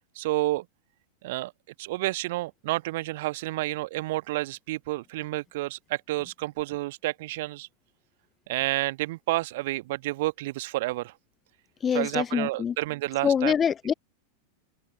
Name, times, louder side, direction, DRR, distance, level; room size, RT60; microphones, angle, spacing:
voice 1, 0.1-0.6 1.2-1.5 1.8-7.7 8.5-11.1 11.9-13.5, right 18 dB, 50° right, 1.4 m, -30 dB
voice 2, 11.8-12.7 13.2-13.9, left 7 dB, 20° left, 0.9 m, -25 dB
figure-of-eight pair, 90°, 0 cm